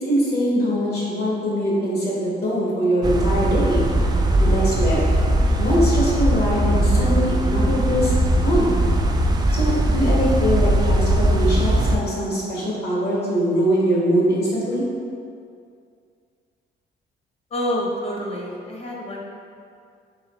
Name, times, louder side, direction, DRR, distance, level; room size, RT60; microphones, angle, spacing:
voice 1, 0.0-3.8 4.4-5.1 5.6-8.1 8.4-8.8 9.5-14.8, equal, 55° left, -6 dB, 1.4 m, -22 dB
sound 1, 3.0-12.0, right 1 dB, 20° right, 0.3 m, -19 dB
voice 2, 17.5-19.2, equal, 30° left, -2 dB, 0.9 m, -27 dB
3.9 x 3.8 x 3.1 m, 2.3 s
cardioid pair, 90°, 20 cm